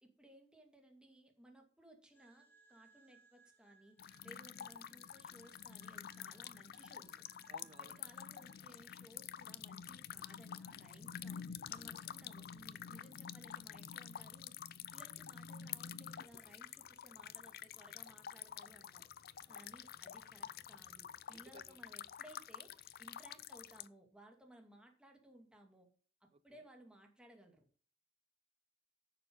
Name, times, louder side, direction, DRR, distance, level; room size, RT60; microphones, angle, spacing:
voice 1, 0.0-7.3 7.8-14.5 14.9-19.1 19.5-25.9 26.2-27.7, right 1 dB, 5° right, 2.3 m, -61 dB
sound 1, 2.1-8.6, right 4 dB, 10° left, 2.0 m, -69 dB
sound 2, 4.0-23.9, left 9 dB, 55° left, 0.5 m, -49 dB
voice 2, 7.5-7.9 19.5-19.7 21.3-21.8 26.3-26.4, right 4 dB, 30° right, 0.5 m, -60 dB
10.5 x 6.9 x 5.5 m
head